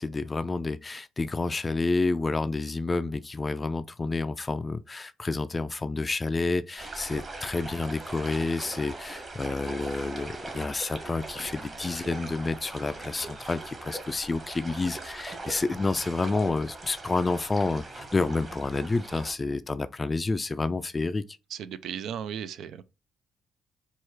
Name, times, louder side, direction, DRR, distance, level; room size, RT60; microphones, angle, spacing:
voice 1, 0.0-21.2, left 3 dB, 25° left, 0.3 m, -29 dB
sound 1, 6.8-19.3, right 2 dB, 35° right, 1.4 m, -41 dB
voice 2, 21.5-22.8, right 8 dB, 75° right, 0.4 m, -36 dB
4.6 x 2.4 x 4.5 m
cardioid pair, 90°, 0 cm